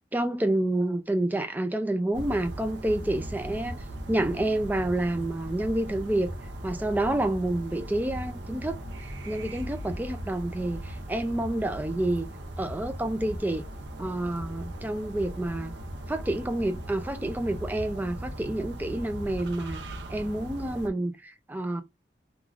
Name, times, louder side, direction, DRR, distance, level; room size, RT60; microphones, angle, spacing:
voice 1, 0.1-6.3 6.6-8.8 9.2-12.3 12.6-13.6 14.0-15.7 16.1-19.8 20.1-21.8, right 1 dB, 10° right, 0.3 m, -29 dB
sound 1, 2.1-20.9, right 1 dB, 75° right, 0.6 m, -38 dB
3.3 x 2.3 x 2.4 m
head